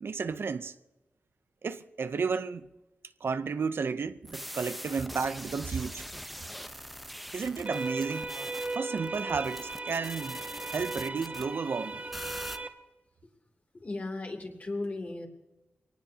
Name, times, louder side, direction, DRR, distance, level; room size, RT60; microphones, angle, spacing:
voice 1, 0.0-0.7 1.6-2.7 3.2-6.0 7.3-8.3 8.7-10.4 10.7-12.0, right 5 dB, 65° right, 0.6 m, -32 dB
sound 1, 4.3-11.5 12.1-12.6, equal, ahead, 0.8 m, -43 dB
sound 2, 7.7-12.7, right 2 dB, 35° right, 1.5 m, -37 dB
voice 2, 13.7-15.3, left 2 dB, 40° left, 2.8 m, -36 dB
24.5 x 18.5 x 2.8 m
wide cardioid pair, 85°, 4 cm